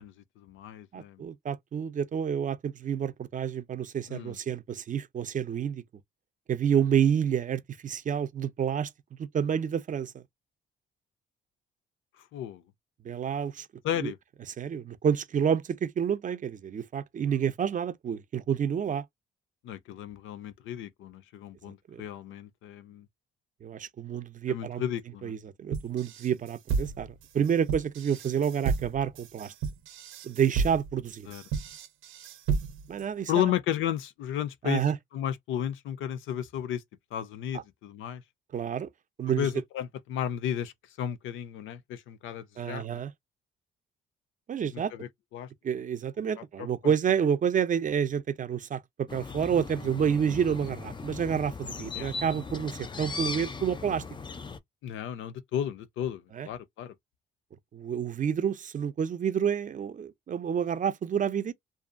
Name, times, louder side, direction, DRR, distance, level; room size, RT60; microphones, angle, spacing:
voice 1, 0.0-1.3 4.1-4.4 12.3-12.6 13.8-14.2 19.6-23.1 24.5-25.3 31.3-31.4 33.3-34.8 35.1-36.8 37.1-38.2 39.4-43.0 44.7-45.5 46.4-46.5 46.8-46.9 52.0-52.1 54.8-56.9, left 10 dB, 85° left, 0.5 m, -33 dB
voice 2, 0.9-5.8 6.5-8.9 9.2-10.2 13.0-13.7 14.0-14.1 14.6-19.0 21.9-22.0 23.6-24.8 25.2-27.1 27.3-29.5 30.2-31.3 32.9-33.5 34.6-35.0 37.5-37.6 38.5-38.9 39.2-39.5 42.6-43.1 44.5-44.9 45.6-54.0 56.3-56.5 57.7-61.5, right 8 dB, 40° right, 0.5 m, -29 dB
sound 1, 25.7-33.0, right 5 dB, 90° right, 0.7 m, -32 dB
sound 2, 49.1-54.6, left 4 dB, 25° left, 0.5 m, -38 dB
2.6 x 2.3 x 2.5 m
cardioid pair, 90°, 20 cm